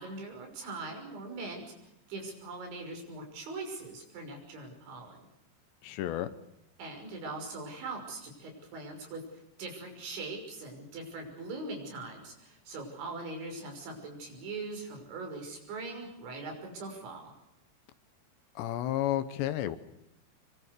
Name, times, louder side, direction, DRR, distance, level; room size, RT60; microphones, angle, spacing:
voice 1, 0.0-1.7 2.1-5.2 6.8-17.3, right 3 dB, 75° right, 3 dB, 8.2 m, -41 dB
voice 2, 5.8-6.3 18.6-19.8, left 12 dB, 75° left, 12 dB, 3.0 m, -31 dB
26.5 x 23.5 x 6.8 m, 0.85 s
omnidirectional pair, 5.3 m